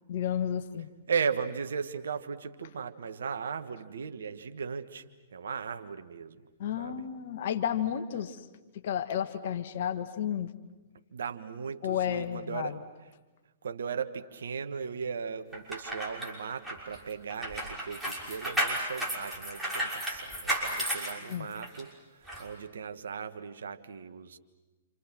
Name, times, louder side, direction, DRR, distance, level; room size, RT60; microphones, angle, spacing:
voice 1, 0.1-0.9 6.6-8.4 8.8-10.5 11.8-12.8 21.2-21.5, left 9 dB, 55° left, 8 dB, 1.6 m, -32 dB
voice 2, 1.1-5.0 5.3-6.3 6.8-7.0 8.2-8.3 11.1-12.8 13.6-21.9 22.4-24.4, right 6 dB, 70° right, 9 dB, 1.5 m, -37 dB
sound 1, 15.5-21.8 22.3-22.4, equal, 5° right, 6.2 m, -33 dB
29.5 x 27.5 x 6.2 m, 1.2 s
figure-of-eight pair, 115°, 0 cm